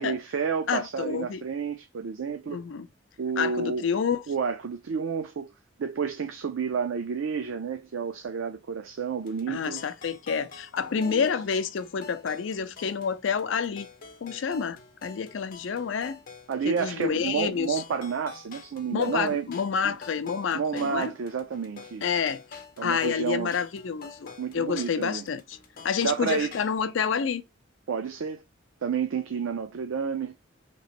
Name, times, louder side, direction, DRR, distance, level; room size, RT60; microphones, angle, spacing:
voice 1, 0.0-2.6 3.2-4.0 4.3-5.5 5.8-9.8 11.0-11.2 16.5-19.5 19.8-19.9 20.5-22.1 22.8-23.5 24.4-25.2 26.0-26.5 27.9-28.4 28.8-30.3, right 6 dB, 90° right, 0.4 m, -30 dB
voice 2, 0.7-1.4 2.5-2.9 3.4-4.2 9.5-13.9 14.2-16.2 16.6-17.8 18.9-21.1 22.0-22.4 22.8-25.6 25.8-27.4, left 6 dB, 70° left, 0.4 m, -28 dB
sound 1, 9.2-26.8, left 5 dB, 45° left, 0.8 m, -48 dB
3.0 x 2.9 x 2.9 m
head